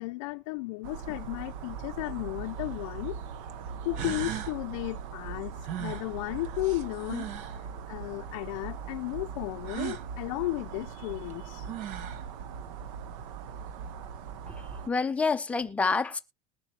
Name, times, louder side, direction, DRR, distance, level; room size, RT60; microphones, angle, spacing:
voice 1, 0.0-3.2 3.8-11.7, left 20 dB, 80° left, 0.5 m, -34 dB
sound 1, 0.8-14.9, right 6 dB, 75° right, 1.0 m, -40 dB
sound 2, 2.4-2.5 3.5-3.6 3.9-4.6 5.6-7.6 9.6-10.1 11.3-11.4 11.7-12.3, right 10 dB, 45° right, 1.0 m, -37 dB
voice 2, 14.5-16.2, left 4 dB, 10° left, 0.6 m, -28 dB
20.5 x 7.4 x 2.8 m
cardioid pair, 175°, 17 cm